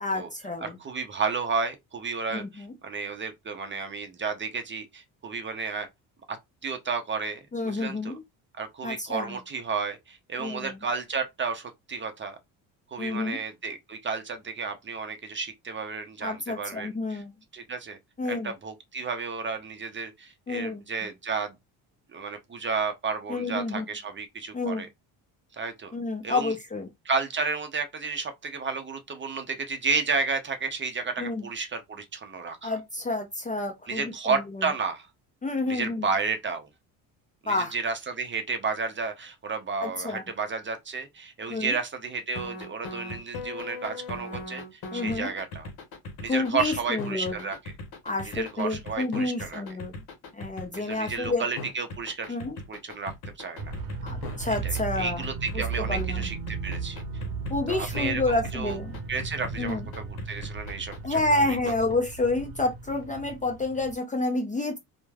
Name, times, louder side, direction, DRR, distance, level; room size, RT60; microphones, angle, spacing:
voice 1, 0.0-0.8 2.3-2.7 7.5-8.2 8.8-9.3 10.4-10.8 13.0-13.4 16.2-17.3 18.2-18.5 20.5-20.8 23.3-23.9 24.5-24.9 25.9-26.9 31.2-31.4 32.6-34.1 35.4-36.1 37.5-37.7 39.8-40.2 41.5-41.7 44.9-45.3 46.3-47.4 48.0-49.9 50.3-51.5 52.3-52.6 54.0-55.2 55.8-56.2 57.5-59.0 59.6-59.8 61.0-64.8, left 2 dB, 20° left, 0.5 m, -29 dB
voice 2, 0.6-5.9 6.3-6.4 6.6-8.2 8.6-12.4 12.9-17.2 17.5-18.0 18.2-21.5 22.1-24.9 25.5-25.9 26.2-26.6 27.0-32.8 33.9-35.1 35.7-36.7 37.4-45.7 46.2-47.6 48.2-49.6 50.8-52.4 52.7-53.7 54.4-57.0 57.7-58.8 59.1-61.6, right 4 dB, 30° right, 0.6 m, -32 dB
sound 1, 42.3-58.1 58.4-61.9, left 3 dB, 60° left, 0.9 m, -39 dB
sound 2, 53.6-63.9, right 4 dB, 65° right, 0.8 m, -35 dB
3.0 x 2.2 x 2.3 m
supercardioid pair, 75°, 41 cm